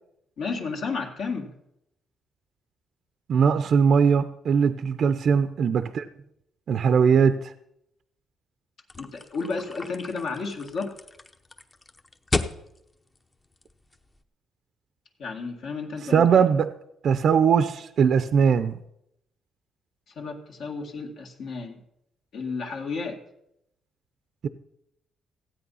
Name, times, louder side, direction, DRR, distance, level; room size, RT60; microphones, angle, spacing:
voice 1, 0.4-1.5 9.0-10.9 15.2-16.4 20.2-21.8 22.3-23.2, left 4 dB, 70° left, 0 dB, 2.1 m, -32 dB
voice 2, 3.3-6.0 6.7-7.5 16.1-16.7 17.0-18.8 24.4-24.5, right 6 dB, 55° right, 11 dB, 0.5 m, -20 dB
sound 1, 8.9-14.2, left 3 dB, 25° left, 0.8 m, -34 dB
15.5 x 8.9 x 5.6 m, 0.80 s
cardioid pair, 110°, 0 cm